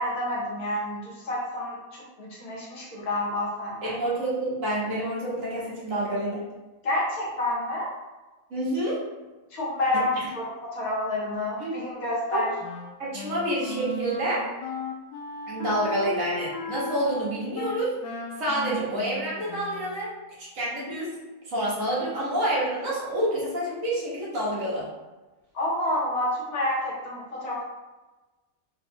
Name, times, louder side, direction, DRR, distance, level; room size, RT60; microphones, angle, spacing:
voice 1, 0.0-4.0 6.8-7.9 9.5-12.5 25.5-27.6, left 1 dB, 70° left, -4 dB, 1.5 m, -29 dB
voice 2, 3.8-6.4 8.5-9.0 11.6-11.7 12.3-12.4 13.0-14.4 15.5-17.9 18.4-20.1 20.4-21.1 21.4-24.8, right 1 dB, 60° right, -7 dB, 1.6 m, -28 dB
Wind instrument woodwind instrument, 12.6-20.1, left 2 dB, 85° left, 1.2 m, -36 dB
4.1 x 2.3 x 4.4 m, 1.2 s
omnidirectional pair, 1.6 m